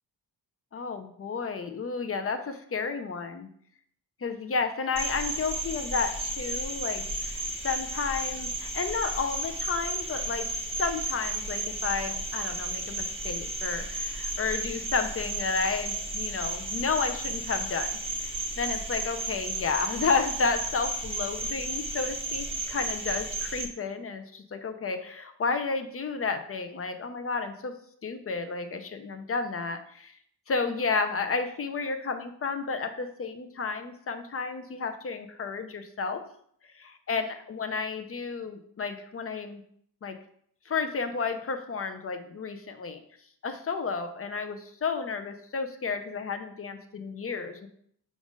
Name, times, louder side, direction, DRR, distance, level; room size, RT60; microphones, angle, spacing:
voice 1, 0.7-3.5 4.2-7.0 7.3-10.4 10.8-27.7 28.0-30.1 30.5-36.2 36.7-39.6 40.0-40.2 40.7-43.0 43.4-47.7, left 4 dB, 40° left, 7 dB, 0.5 m, -32 dB
Cricket, 5.0-23.7, right 2 dB, 15° right, 0.8 m, -33 dB
4.8 x 2.5 x 3.6 m, 0.64 s
cardioid pair, 65°, 38 cm